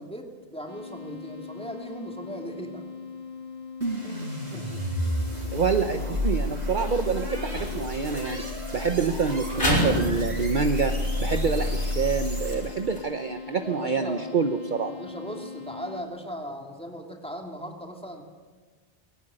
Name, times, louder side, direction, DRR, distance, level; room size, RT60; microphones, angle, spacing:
voice 1, 0.0-2.9 4.0-4.9 13.6-14.5 14.8-18.2, equal, 5° left, 2 dB, 2.7 m, -38 dB
sound 1, 0.7-16.0, left 5 dB, 35° left, 3.1 m, -41 dB
sound 2, 3.8-12.9, left 1 dB, 70° right, 6.0 m, -30 dB
voice 2, 5.5-8.4 8.7-10.9 11.2-14.9, right 5 dB, 45° right, 7 dB, 1.0 m, -27 dB
sound 3, 7.5-13.0, equal, 60° left, 6.3 m, -31 dB
20.5 x 17.5 x 8.9 m, 1.4 s
omnidirectional pair, 1.2 m